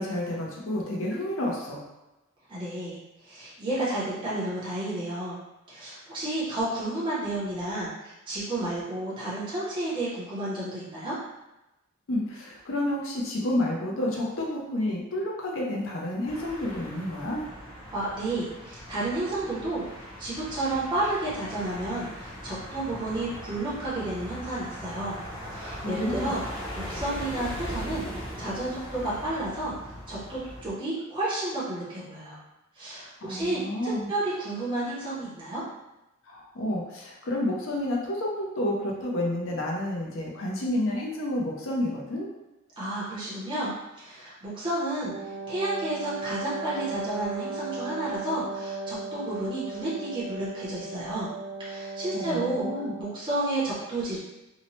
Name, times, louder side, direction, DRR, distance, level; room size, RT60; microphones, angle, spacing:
voice 1, 0.0-1.8 12.1-17.5 25.8-26.3 33.2-34.1 36.3-42.3 52.1-52.9, left 1 dB, 60° left, -2 dB, 0.5 m, -30 dB
voice 2, 2.5-3.0 3.2-5.4 5.7-11.1 17.9-25.2 25.5-26.4 26.7-32.4 32.8-35.6 42.8-43.7 44.0-45.1 45.5-51.3 51.6-52.7 53.0-54.2, right 2 dB, 20° right, -8 dB, 0.6 m, -31 dB
sound 1, 16.3-30.7, equal, 25° left, 0.6 m, -40 dB
Wind instrument woodwind instrument, 45.0-53.2, right 3 dB, 70° right, 0.6 m, -36 dB
2.7 x 2.0 x 2.9 m, 0.97 s
head